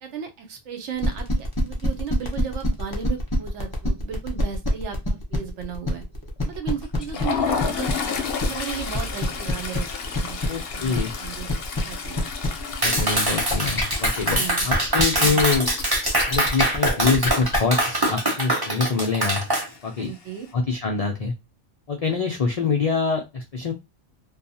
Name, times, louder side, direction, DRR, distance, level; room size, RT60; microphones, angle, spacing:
voice 1, 0.0-6.0 6.4-8.2 8.4-10.4 10.7-11.5 11.8-12.3 14.3-14.7 15.1-15.4 20.0-20.5, right 7 dB, 75° right, 5 dB, 1.0 m, -35 dB
sound 1, 1.0-17.6, left 2 dB, 25° left, 0.6 m, -27 dB
Toilet flush, 6.8-17.6 17.9-18.1 18.4-18.6 19.5-20.1, left 6 dB, 60° left, 0.7 m, -32 dB
voice 2, 10.5-11.1 12.8-15.7 16.3-19.4 19.8-20.1 20.5-21.3 21.9-23.7, left 4 dB, 75° left, 1 dB, 0.3 m, -25 dB
Clapping, 12.8-19.7, right 1 dB, 25° right, 0.7 m, -23 dB
2.6 x 2.3 x 2.7 m, 0.23 s
omnidirectional pair, 1.2 m